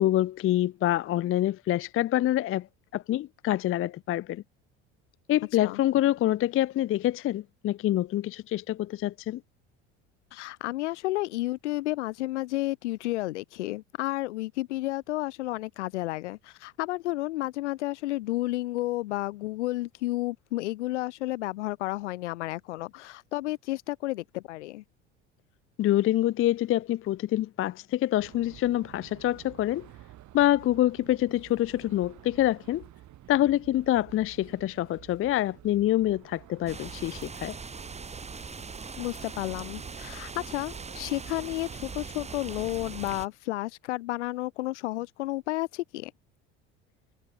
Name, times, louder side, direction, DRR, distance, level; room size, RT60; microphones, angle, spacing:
voice 1, 0.0-2.7 2.9-4.4 5.3-9.4 25.8-29.9 30.3-32.8 33.3-37.6, left 14 dB, 40° left, 0.6 m, -26 dB
voice 2, 10.3-24.8 39.0-46.1, left 18 dB, 80° left, 3.0 m, -32 dB
sound 1, 28.2-43.2, right 14 dB, 55° right, 7.7 m, -51 dB
sound 2, 36.7-43.3, right 4 dB, 20° right, 1.6 m, -41 dB
hypercardioid pair, 70°, 35 cm